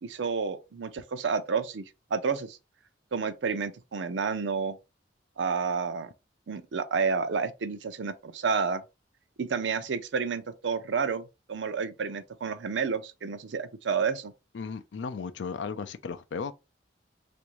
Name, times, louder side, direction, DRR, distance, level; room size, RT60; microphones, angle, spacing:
voice 1, 0.0-1.8 2.1-2.6 3.1-4.8 5.4-6.1 6.5-8.8 9.4-14.3, right 5 dB, 90° right, 0.5 m, -30 dB
voice 2, 14.5-16.5, left 5 dB, 85° left, 0.4 m, -35 dB
3.4 x 2.6 x 3.0 m
head